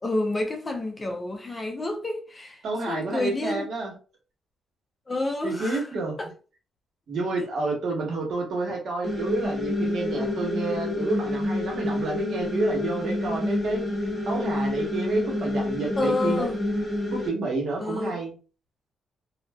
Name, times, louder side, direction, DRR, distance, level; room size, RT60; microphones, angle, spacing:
voice 1, 0.0-2.6 2.9-3.7 5.1-5.9 6.2-6.3 16.0-16.6 17.8-18.2, left 2 dB, 30° left, 0.6 m, -29 dB
voice 2, 2.6-4.0 5.4-6.2 7.1-13.8 14.3-16.5 17.1-18.4, right 3 dB, 65° right, 1.1 m, -29 dB
sound 1, 9.0-17.3, left 1 dB, 25° right, 1.0 m, -28 dB
2.5 x 2.4 x 2.3 m
cardioid pair, 70°, 0 cm